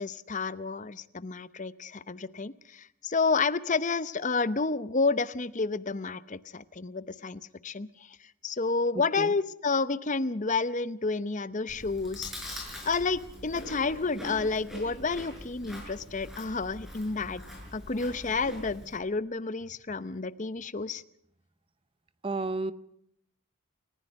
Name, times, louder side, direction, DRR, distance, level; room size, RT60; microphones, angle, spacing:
voice 1, 0.0-8.2 8.4-12.3 12.8-17.4 17.7-21.0, left 4 dB, 35° left, 15 dB, 0.7 m, -30 dB
Chewing mastication, 11.7-19.0, equal, ahead, 6.1 m, -43 dB
voice 2, 22.2-22.7, right 3 dB, 25° right, 15 dB, 0.7 m, -31 dB
29.0 x 15.0 x 6.4 m, 0.72 s
head